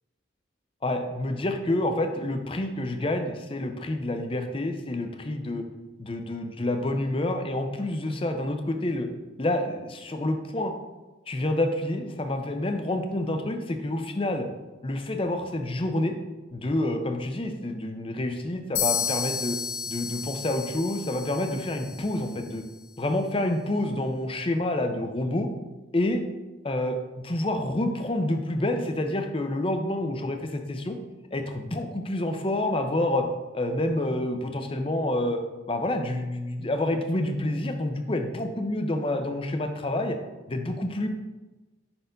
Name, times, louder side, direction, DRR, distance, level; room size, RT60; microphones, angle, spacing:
voice 1, 0.8-5.6 6.0-9.1 9.4-10.7 11.3-14.5 14.8-16.2 16.5-19.6 19.9-22.6 23.0-25.5 25.9-26.2 26.6-27.0 27.2-31.0 31.3-33.3 33.5-35.4 35.7-40.2 40.5-41.1, left 1 dB, 30° left, 6 dB, 0.6 m, -28 dB
sound 1, 18.8-22.5, left 7 dB, 65° left, 0.7 m, -32 dB
5.7 x 4.3 x 5.2 m, 1.2 s
head